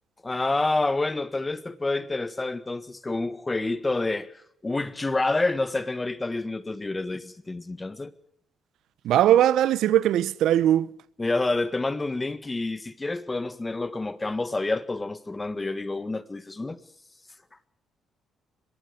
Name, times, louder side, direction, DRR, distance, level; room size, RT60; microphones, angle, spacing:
voice 1, 0.2-4.3 4.6-8.1 11.2-16.8, left 2 dB, 15° left, 1.6 m, -28 dB
voice 2, 9.0-10.9, right 11 dB, 80° right, 0.8 m, -20 dB
23.5 x 22.5 x 5.1 m
cardioid pair, 110°, 0 cm